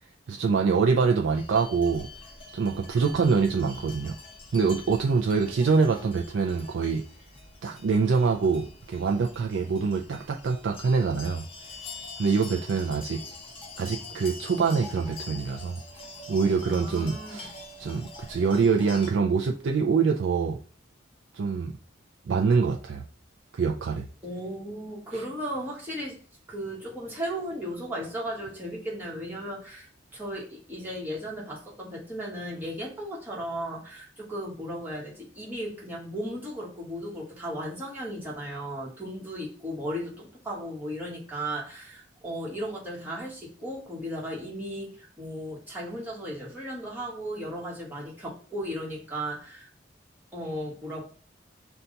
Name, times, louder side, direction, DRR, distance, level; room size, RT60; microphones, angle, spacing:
voice 1, 0.3-2.1 2.5-4.2 4.5-7.0 7.6-11.4 12.2-13.2 13.8-15.8 16.3-17.5 17.8-20.6 21.3-21.7 22.3-23.0 23.5-24.0 25.1-25.2, right 5 dB, 85° right, 2 dB, 0.4 m, -25 dB
sound 1, 1.3-19.1, left 3 dB, 30° left, 0.8 m, -45 dB
voice 2, 16.6-17.5 24.2-26.2 26.5-49.7 50.3-51.0, equal, 10° right, -5 dB, 1.3 m, -36 dB
5.7 x 2.3 x 3.9 m, 0.39 s
head